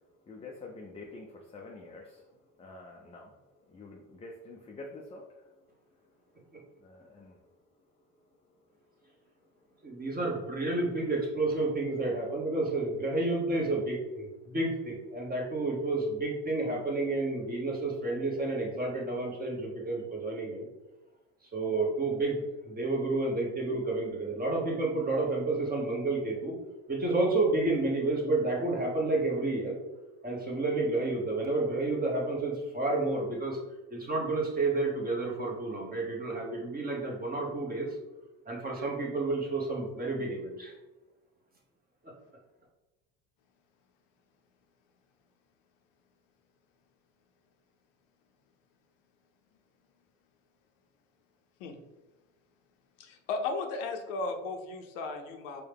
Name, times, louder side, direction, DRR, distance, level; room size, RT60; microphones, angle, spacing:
voice 1, 0.3-2.2 2.6-3.4 3.7-5.4 6.8-7.4 13.5-13.7, left 3 dB, 15° left, 0 dB, 0.4 m, -47 dB
voice 2, 9.8-20.7 21.5-26.5 26.9-29.8 30.2-33.6 33.9-37.9 38.5-40.7, right 2 dB, 20° right, -2 dB, 1.2 m, -30 dB
voice 3, 53.0-55.6, left 3 dB, 75° left, 5 dB, 0.7 m, -35 dB
4.5 x 2.2 x 3.4 m, 1.1 s
hypercardioid pair, 75°, 40 cm